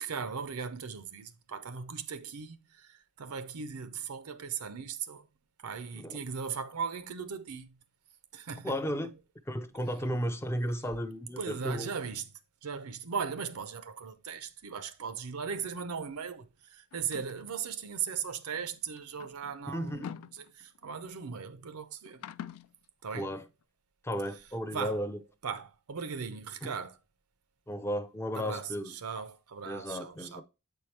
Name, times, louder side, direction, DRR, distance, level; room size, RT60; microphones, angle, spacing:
voice 1, 0.0-5.3 5.6-7.8 8.3-8.8 11.4-12.3 12.6-22.2 23.0-23.3 24.7-25.0 25.4-27.0 28.3-30.4, right 6 dB, 85° right, 0.6 m, -38 dB
voice 2, 8.6-9.1 9.5-11.9 19.7-20.1 23.1-23.4 24.0-25.2 26.6-26.7 27.7-28.9 29.7-30.4, equal, 10° left, 0.4 m, -34 dB
sound 1, 16.9-17.5 18.5-20.9 22.1-22.7, left 8 dB, 75° left, 0.3 m, -45 dB
7.7 x 4.5 x 3.2 m
head